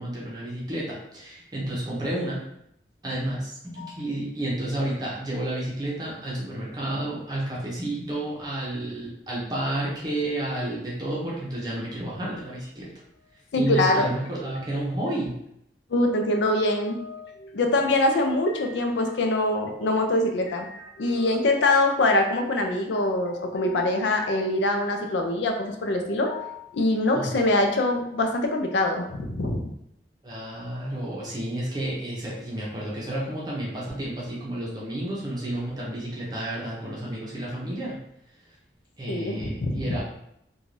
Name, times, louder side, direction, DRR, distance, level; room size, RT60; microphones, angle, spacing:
voice 1, 0.0-2.4 3.0-12.9 13.6-15.3 27.1-27.3 30.2-38.0 39.0-40.0, right 1 dB, 20° right, -6 dB, 0.7 m, -31 dB
voice 2, 13.5-14.1 14.4-14.5 15.9-29.7 39.1-40.0, left 2 dB, 85° left, 4 dB, 0.4 m, -24 dB
2.5 x 2.3 x 3.2 m, 0.76 s
head